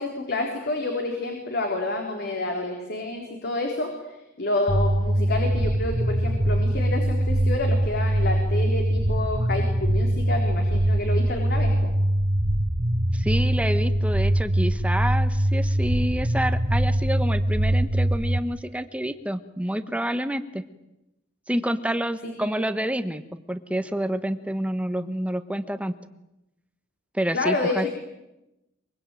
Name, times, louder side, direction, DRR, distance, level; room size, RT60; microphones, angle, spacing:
voice 1, 0.0-3.9 4.4-11.9 22.2-22.6 27.3-27.9, left 2 dB, 55° left, 2 dB, 3.9 m, -29 dB
sound 1, 4.7-18.4, right 1 dB, 25° right, 1.4 m, -23 dB
voice 2, 13.1-20.6 21.5-23.2 23.5-25.9 27.1-27.9, equal, 5° right, 11 dB, 1.3 m, -28 dB
24.0 x 23.5 x 9.2 m, 0.94 s
head